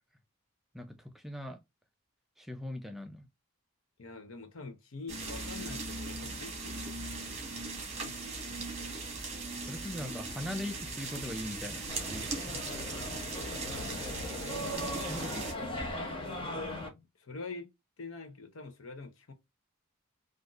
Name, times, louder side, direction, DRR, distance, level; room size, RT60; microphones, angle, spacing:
voice 1, 0.7-1.6 2.4-3.3 9.6-12.5 15.1-15.8, left 1 dB, ahead, 0.3 m, -41 dB
voice 2, 4.0-7.3 8.0-8.9 13.7-15.1 16.5-17.7 18.0-19.3, left 3 dB, 70° left, 0.7 m, -46 dB
sound 1, 5.1-15.5, right 3 dB, 30° right, 1.2 m, -39 dB
sound 2, 11.9-16.9, left 1 dB, 25° left, 0.8 m, -38 dB
3.8 x 2.5 x 2.3 m
head